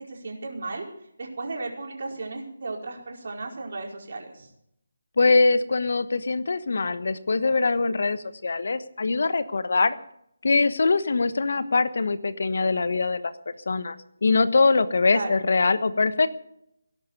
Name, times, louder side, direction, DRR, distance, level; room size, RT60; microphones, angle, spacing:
voice 1, 0.1-0.8 1.2-4.5 15.1-15.5, right 3 dB, 50° right, 0 dB, 4.9 m, -35 dB
voice 2, 5.2-10.0 10.4-13.3 13.7-14.0 14.2-16.3, left 3 dB, 55° left, 14 dB, 1.1 m, -22 dB
18.5 x 11.0 x 6.6 m, 0.76 s
figure-of-eight pair, 150°, 0 cm